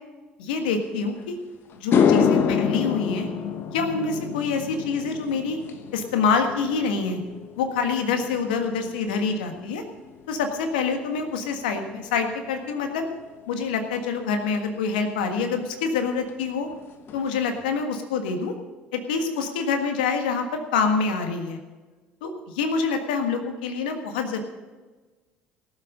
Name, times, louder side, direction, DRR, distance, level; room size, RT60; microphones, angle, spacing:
voice 1, 0.4-1.4 1.8-3.3 3.7-5.6 5.9-7.2 7.6-9.8 10.3-13.1 13.5-16.7 17.1-18.5 18.9-21.6 22.2-24.4, left 5 dB, 80° left, 5 dB, 1.6 m, -26 dB
sound 1, 1.2-1.3 1.7-10.2 10.5-10.9 14.5-14.6 16.3-16.4 16.7-16.8 17.1-17.6, left 7 dB, 50° left, 1.2 m, -27 dB
17.5 x 7.5 x 6.6 m, 1.3 s
hypercardioid pair, 60°, 5 cm